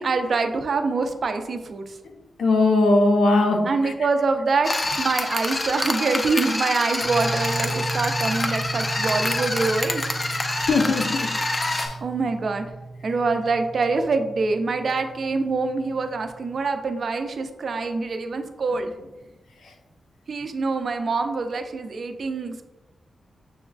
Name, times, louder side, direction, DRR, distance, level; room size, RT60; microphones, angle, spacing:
voice 1, 0.0-1.9 3.6-10.0 12.0-12.6 13.0-18.9 20.3-22.6, right 4 dB, 55° right, 7 dB, 0.4 m, -25 dB
voice 2, 2.4-3.9 10.7-11.3 11.7-11.9, left 2 dB, 90° left, 4 dB, 0.5 m, -20 dB
sound 1, 4.6-11.9, left 2 dB, 25° left, 0.4 m, -26 dB
sound 2, 7.0-16.6, right 3 dB, 5° right, 0.7 m, -35 dB
6.8 x 2.3 x 2.3 m, 1.1 s
wide cardioid pair, 135°, 0 cm